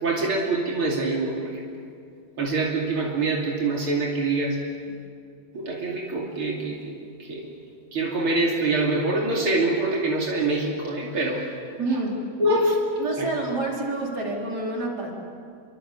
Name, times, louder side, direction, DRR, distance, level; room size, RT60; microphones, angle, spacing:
voice 1, 0.0-1.6 2.4-4.6 5.5-7.5 7.9-11.4 12.4-12.8 13.2-13.3, right 2 dB, 80° right, -2 dB, 3.6 m, -25 dB
voice 2, 11.8-12.2 13.0-15.1, right 3 dB, 50° right, -2 dB, 5.1 m, -28 dB
28.0 x 25.0 x 8.5 m, 2.3 s
omnidirectional pair, 2.3 m